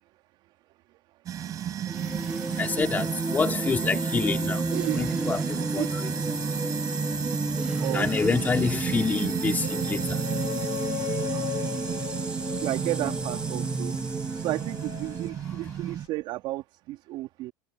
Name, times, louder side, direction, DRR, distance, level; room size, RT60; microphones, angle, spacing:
sound 1, 1.3-16.1, right 10 dB, 35° right, 6.5 m, -34 dB
voice 1, 1.4-12.6 13.9-14.5 15.4-15.7, left 5 dB, 15° left, 4.9 m, -31 dB
sound 2, 1.9-15.3, right 3 dB, 10° right, 1.9 m, -31 dB
voice 2, 4.7-5.0 5.8-5.9 7.8-8.1 11.3-11.9 12.6-13.9 14.4-17.5, right 17 dB, 50° right, 3.7 m, -32 dB
sound 3, 9.6-16.1, left 22 dB, 60° left, 3.5 m, -38 dB
supercardioid pair, 135°, 10 cm